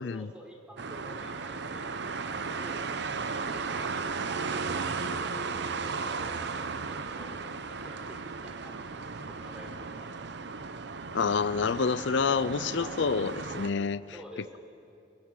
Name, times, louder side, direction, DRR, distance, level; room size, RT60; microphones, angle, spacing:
voice 1, 0.0-2.8 3.4-7.4 7.6-10.1 12.7-13.0 14.1-14.6, equal, 5° right, 0 dB, 3.8 m, -49 dB
sound 1, 0.8-13.7, right 4 dB, 65° right, 0.8 m, -35 dB
voice 2, 11.1-14.0, left 5 dB, 70° left, 15 dB, 0.5 m, -28 dB
30.0 x 17.0 x 6.4 m, 2.6 s
head